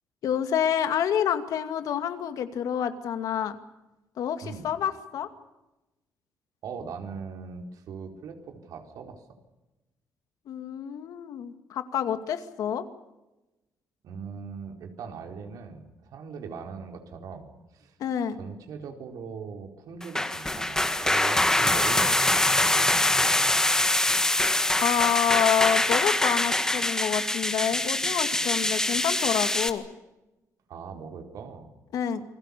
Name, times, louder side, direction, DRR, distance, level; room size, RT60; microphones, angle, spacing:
voice 1, 0.2-3.6 4.2-5.3 10.5-12.8 18.0-18.4 24.8-29.8 31.9-32.2, left 9 dB, 75° left, 9 dB, 2.3 m, -28 dB
voice 2, 6.6-9.2 14.0-17.9 18.4-23.4 30.7-31.7, right 5 dB, 75° right, 4 dB, 4.5 m, -40 dB
sound 1, 20.0-29.7, left 1 dB, 10° left, 1.8 m, -24 dB
28.5 x 22.0 x 7.0 m, 1.0 s
cardioid pair, 140°, 6 cm